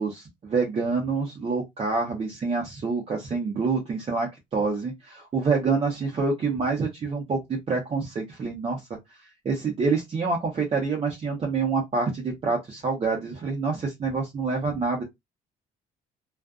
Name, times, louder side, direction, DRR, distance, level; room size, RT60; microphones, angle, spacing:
voice 1, 0.0-8.9 9.2-15.0, right 4 dB, 35° right, 0.8 m, -27 dB
2.4 x 2.4 x 2.3 m
cardioid pair, 110°, 17 cm